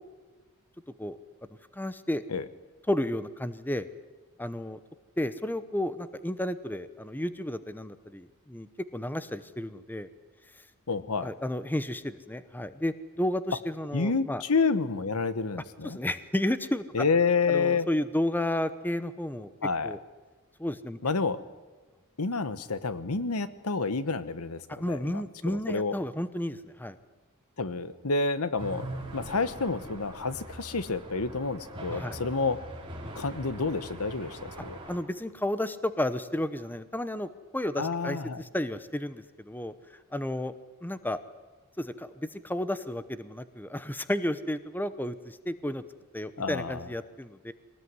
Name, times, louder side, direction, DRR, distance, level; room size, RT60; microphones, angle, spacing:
voice 1, 1.8-2.2 2.9-3.9 4.4-4.8 5.2-10.1 11.2-14.4 15.8-16.8 17.5-19.5 19.8-20.0 20.6-21.0 24.7-27.0 31.9-32.2 34.9-39.7 40.1-40.5 40.8-41.2 41.8-45.8 46.1-47.5, left 1 dB, 10° left, 13 dB, 0.9 m, -32 dB
voice 2, 10.9-11.3 13.9-16.0 16.9-17.9 19.6-20.0 21.0-21.4 22.2-26.0 27.6-32.6 33.1-34.8 37.8-38.4 46.4-46.9, left 4 dB, 85° left, 14 dB, 1.2 m, -29 dB
sound 1, 28.6-35.0, right 1 dB, 25° right, 4.5 m, -42 dB
23.0 x 19.0 x 9.6 m, 1.3 s
head